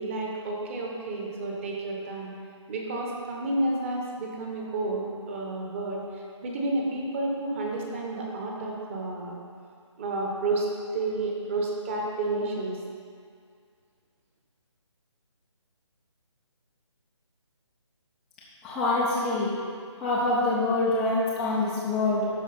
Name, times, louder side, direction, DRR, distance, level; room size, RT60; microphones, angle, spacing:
voice 1, 0.0-2.3 2.7-9.4 10.0-10.7 10.9-12.8, right 2 dB, 25° right, -1 dB, 1.1 m, -30 dB
voice 2, 18.6-19.5 20.0-22.3, left 2 dB, ahead, -11 dB, 0.3 m, -25 dB
12.5 x 4.8 x 4.2 m, 2.2 s
figure-of-eight pair, 150°, 16 cm